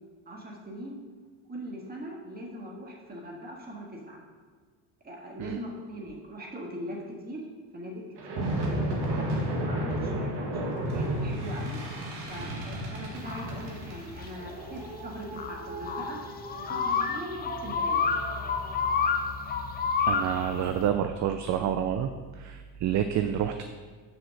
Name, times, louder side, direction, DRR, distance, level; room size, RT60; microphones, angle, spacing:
voice 1, 0.2-1.0 1.5-4.2 5.0-7.4 7.7-9.0 9.6-11.8 12.3-16.2 16.5-18.0, equal, 20° right, -1 dB, 1.6 m, -41 dB
sound 1, 8.2-18.8, right 1 dB, 65° right, 1.7 m, -33 dB
sound 2, 13.2-20.9, left 5 dB, 20° left, 0.5 m, -30 dB
voice 2, 20.1-23.6, right 9 dB, 45° right, 7 dB, 0.4 m, -28 dB
6.2 x 4.9 x 6.4 m, 1.5 s
cardioid pair, 130°, 44 cm